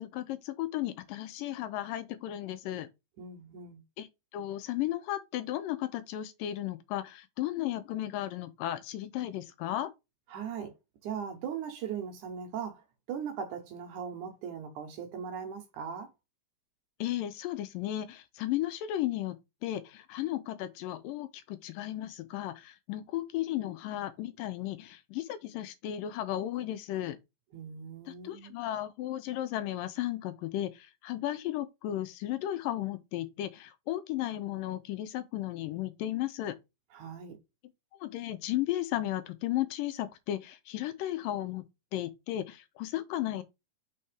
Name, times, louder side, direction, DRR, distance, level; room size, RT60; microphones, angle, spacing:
voice 1, 0.0-2.9 4.0-4.1 4.3-9.9 17.0-27.2 28.1-36.6 38.0-41.6 41.9-43.4, left 13 dB, 85° left, 2.3 m, -34 dB
voice 2, 3.2-3.8 10.3-10.7 11.0-12.8 13.1-16.1 27.5-28.5 36.9-37.4, right 7 dB, 65° right, 2.5 m, -39 dB
5.5 x 4.2 x 5.1 m
omnidirectional pair, 4.0 m